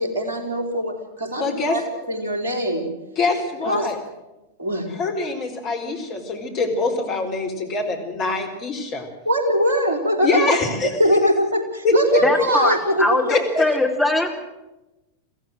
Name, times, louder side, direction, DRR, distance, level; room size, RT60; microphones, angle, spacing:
voice 1, 0.0-1.8 2.1-2.9 3.7-3.9 4.6-4.9 9.2-10.6 11.0-13.2, equal, 65° right, 5 dB, 4.1 m, -22 dB
voice 2, 1.4-1.8 3.2-4.0 4.9-9.1 10.2-11.0 11.8-12.2 13.3-13.6, left 3 dB, 35° left, 4 dB, 4.5 m, -24 dB
voice 3, 12.2-14.3, left 2 dB, ahead, 0 dB, 3.4 m, -21 dB
23.0 x 15.5 x 7.8 m, 1.0 s
figure-of-eight pair, 90°, 0 cm